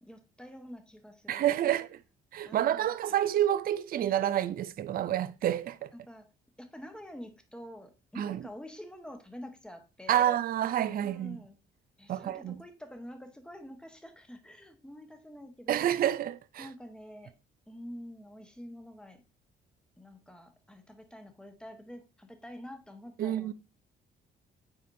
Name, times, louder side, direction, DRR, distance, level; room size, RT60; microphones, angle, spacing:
voice 1, 0.0-1.8 2.5-3.2 5.9-6.3 6.6-10.3 11.0-11.6 12.0-15.9 16.6-17.3 17.7-19.2 20.0-23.5, equal, 5° left, 1.1 m, -47 dB
voice 2, 1.3-1.9 2.3-5.9 8.2-8.4 10.1-11.4 12.1-12.6 15.7-16.7 23.2-23.5, right 11 dB, 50° right, 0.4 m, -28 dB
9.3 x 4.2 x 2.6 m
cardioid pair, 90°, 20 cm